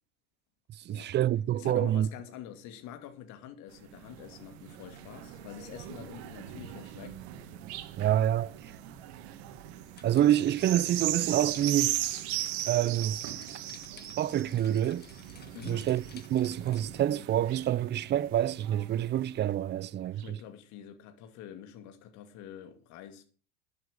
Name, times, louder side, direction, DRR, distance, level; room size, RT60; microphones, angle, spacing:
voice 1, 0.9-2.1 8.0-8.5 10.0-12.0 12.7-13.2 14.2-15.1 15.7-16.0 16.3-20.4, right 11 dB, 30° right, 0.6 m, -27 dB
voice 2, 1.5-7.2 15.5-15.9 20.1-23.2, left 10 dB, 55° left, 2.5 m, -46 dB
sound 1, 3.7-19.6 20.2-20.3, right 13 dB, 70° right, 1.9 m, -38 dB
sound 2, 9.9-17.0, left 7 dB, 30° left, 1.6 m, -53 dB
11.5 x 7.9 x 6.7 m
hypercardioid pair, 95°, 33 cm